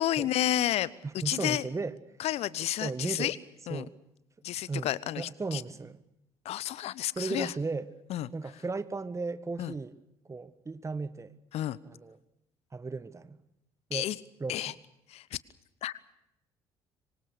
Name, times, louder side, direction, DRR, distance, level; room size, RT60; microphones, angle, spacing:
voice 1, 0.0-1.7 2.2-3.4 3.7-3.9 4.4-5.6 6.4-7.5 8.1-8.3 9.6-9.7 11.5-11.8 13.9-14.2 14.5-14.7 15.1-15.4 15.8-15.9, left 13 dB, 55° left, 20 dB, 0.9 m, -31 dB
voice 2, 1.0-1.9 2.8-3.3 3.7-3.9 4.7-6.0 7.1-7.9 8.3-10.0 10.3-11.4 11.9-12.2 12.7-13.4 13.9-14.1 14.4-14.7, right 4 dB, 25° right, 14 dB, 1.7 m, -35 dB
26.0 x 24.5 x 6.5 m, 0.82 s
figure-of-eight pair, 50°, 12 cm